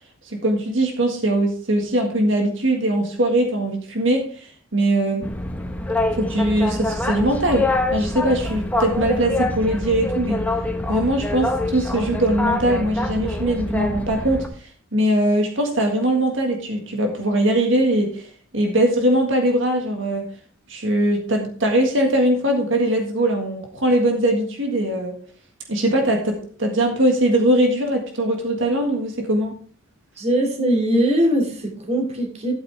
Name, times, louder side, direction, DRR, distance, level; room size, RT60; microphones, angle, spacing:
voice 1, 0.2-5.3 6.1-10.4 10.9-20.3 20.7-25.2 25.7-29.5, right 1 dB, 60° right, 1.7 m, -21 dB
Boat Water vehicle, 5.2-14.5, left 2 dB, 5° left, 1.3 m, -25 dB
voice 2, 30.2-32.5, right 1 dB, 30° right, 2.5 m, -21 dB
12.5 x 8.8 x 3.4 m
head